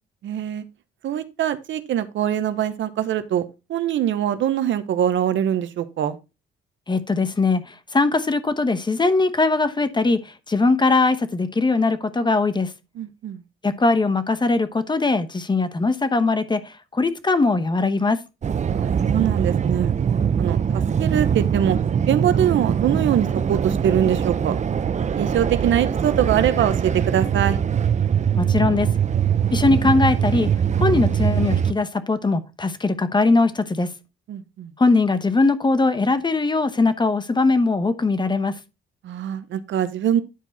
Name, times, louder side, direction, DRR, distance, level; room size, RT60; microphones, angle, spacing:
voice 1, 0.2-0.6 1.0-3.4 3.7-6.2 13.0-13.4 18.6-19.9 20.4-21.8 22.1-24.6 25.2-27.6 34.3-34.7 39.0-40.2, right 10 dB, 70° right, 0.9 m, -23 dB
voice 2, 6.9-12.7 13.6-18.2 28.4-28.9 29.5-30.5 30.8-33.9 34.8-38.6, left 3 dB, 20° left, 1.0 m, -20 dB
sound 1, 18.4-31.7, right 8 dB, 35° right, 0.6 m, -22 dB
10.0 x 4.6 x 4.1 m
cardioid pair, 90°, 20 cm